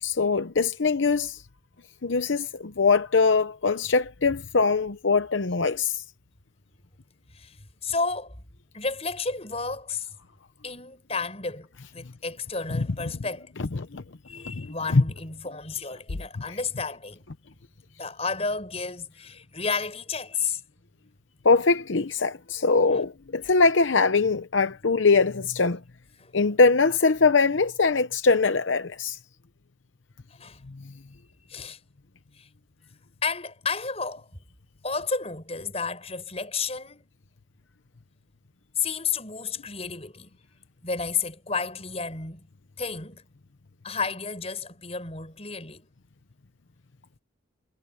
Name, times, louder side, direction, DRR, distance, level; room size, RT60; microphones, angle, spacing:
voice 1, 0.0-1.4 2.0-6.0 12.7-12.9 13.6-14.0 14.5-15.0 16.5-16.6 21.4-25.8 26.3-29.2, left 4 dB, 75° left, 0.8 m, -22 dB
voice 2, 7.8-8.3 8.7-10.1 10.6-13.5 14.3-17.2 18.0-20.6 22.9-23.1 26.2-26.3 30.4-30.6 31.5-31.8 32.4-32.5 33.2-34.3 34.8-37.1 38.7-40.3 40.8-42.4 42.8-43.2 43.8-45.8, left 4 dB, 30° left, 6.8 m, -32 dB
head